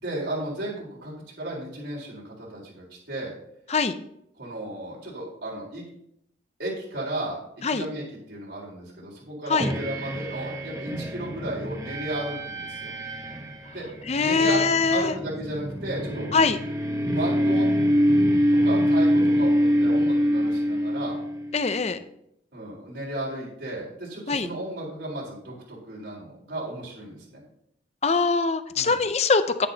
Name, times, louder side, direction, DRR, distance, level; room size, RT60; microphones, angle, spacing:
voice 1, 0.0-3.3 4.4-5.8 6.6-12.9 13.7-13.9 14.2-14.6 14.9-16.3 17.0-17.7 18.5-21.2 22.5-27.4 28.7-29.0, right 1 dB, 80° right, -4 dB, 4.2 m, -34 dB
sound 1, 9.6-21.7, equal, 20° right, 0.8 m, -25 dB
voice 2, 14.1-15.1 16.3-16.6 21.5-22.0 24.3-24.5 28.0-29.7, left 4 dB, 35° left, 11 dB, 0.6 m, -22 dB
10.0 x 9.9 x 2.8 m, 0.75 s
head